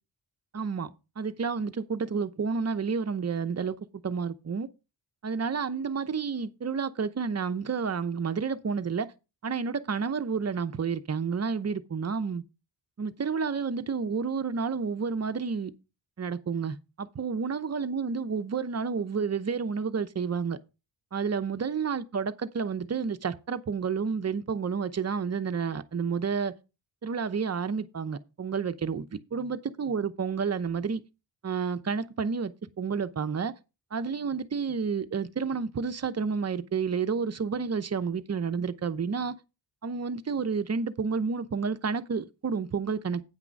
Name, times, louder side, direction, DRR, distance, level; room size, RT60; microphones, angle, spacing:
voice 1, 0.5-0.9 1.2-4.7 5.2-9.1 9.4-12.4 13.0-15.7 16.2-20.6 21.1-26.5 27.0-29.0 29.3-31.0 31.4-32.5 32.8-33.5 33.9-39.3 39.8-43.2, right 5 dB, 35° right, 0.8 m, -30 dB
9.1 x 6.0 x 5.3 m
wide cardioid pair, 115°, 43 cm